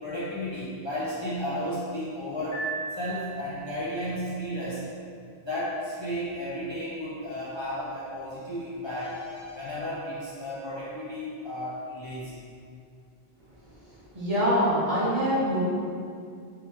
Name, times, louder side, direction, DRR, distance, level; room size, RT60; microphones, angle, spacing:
voice 1, 0.0-4.8 5.4-12.4, equal, 30° left, -9 dB, 0.6 m, -33 dB
Piano, 2.5-3.8, right 4 dB, 75° left, 1.7 m, -36 dB
voice 2, 14.1-15.6, equal, 35° right, -9 dB, 1.2 m, -24 dB
3.6 x 3.1 x 4.3 m, 2.3 s
omnidirectional pair, 1.1 m